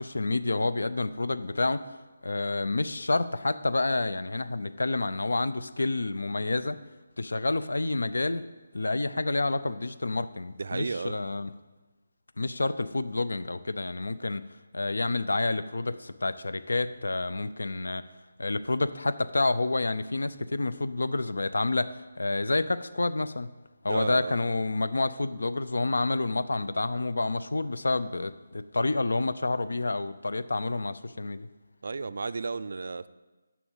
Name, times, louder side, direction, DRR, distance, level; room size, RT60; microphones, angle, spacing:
voice 1, 0.0-1.9 2.2-6.8 7.2-8.4 8.7-11.5 12.4-14.4 14.7-18.0 18.4-23.5 23.8-31.5, left 2 dB, 85° left, 14 dB, 0.5 m, -29 dB
voice 2, 10.6-11.1 23.9-24.4 31.8-33.1, right 4 dB, 60° right, 14 dB, 0.4 m, -33 dB
7.0 x 6.2 x 7.3 m, 1.2 s
figure-of-eight pair, 165°, 0 cm